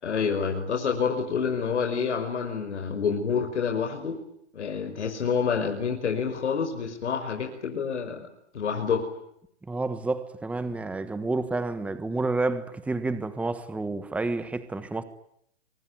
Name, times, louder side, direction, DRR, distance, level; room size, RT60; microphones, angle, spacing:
voice 1, 0.0-4.2 4.5-8.3 8.5-9.1, left 6 dB, 75° left, 5.6 m, -28 dB
voice 2, 9.7-15.0, right 3 dB, 5° right, 1.4 m, -29 dB
24.5 x 24.0 x 9.5 m
hypercardioid pair, 140°, 34 cm